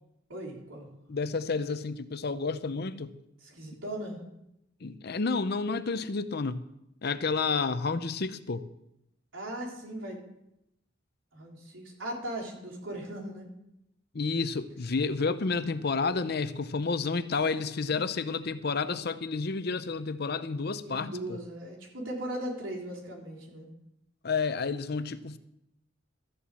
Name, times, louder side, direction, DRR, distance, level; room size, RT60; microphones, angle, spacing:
voice 1, 0.3-0.9 3.4-4.2 9.3-10.2 11.3-13.5 17.5-18.0 20.8-23.7, right 1 dB, 85° right, 3.6 m, -38 dB
voice 2, 1.1-3.1 4.8-6.6 7.0-8.6 14.1-21.4 24.2-25.4, left 4 dB, 55° left, 0.7 m, -30 dB
14.0 x 7.1 x 7.6 m
head